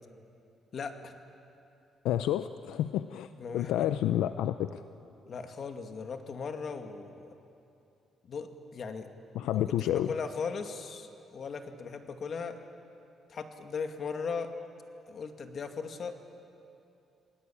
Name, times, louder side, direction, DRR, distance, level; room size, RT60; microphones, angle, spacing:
voice 1, 0.7-1.1 3.4-3.9 5.2-7.3 8.2-9.1 9.5-12.6 13.3-14.5 15.1-16.3, left 5 dB, 55° left, 6 dB, 2.2 m, -38 dB
voice 2, 2.0-3.3 3.5-4.8 9.3-10.1, left 12 dB, 90° left, 11 dB, 0.6 m, -29 dB
28.5 x 20.0 x 8.7 m, 2.7 s
cardioid pair, 90°, 0 cm